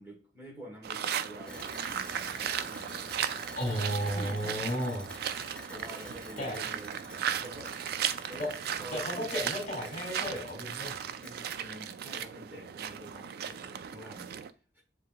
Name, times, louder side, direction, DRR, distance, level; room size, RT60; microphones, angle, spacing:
voice 1, 0.0-3.4 4.0-4.8 5.7-7.8 8.3-8.5 8.8-9.3 11.2-14.3, equal, 10° right, -1 dB, 1.0 m, -48 dB
sound 1, 0.8-14.5, right 8 dB, 60° right, 0.3 m, -36 dB
sound 2, 1.5-11.3, left 1 dB, 5° left, 0.4 m, -49 dB
voice 2, 3.6-5.1 6.4-6.6 8.4-8.5 8.9-11.0, equal, 45° left, 2 dB, 2.1 m, -33 dB
7.4 x 2.8 x 2.2 m, 0.36 s
head